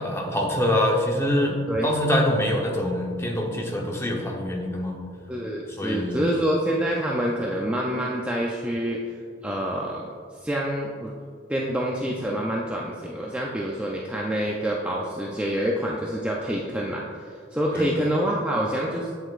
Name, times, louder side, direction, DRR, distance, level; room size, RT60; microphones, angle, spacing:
voice 1, 0.0-5.0 5.8-6.3 17.7-17.9, left 1 dB, 15° left, -1 dB, 0.9 m, -25 dB
voice 2, 5.3-9.2 9.4-10.1 10.4-11.1 11.5-19.1, equal, 5° right, -3 dB, 0.5 m, -27 dB
8.4 x 7.8 x 2.5 m, 2.2 s
head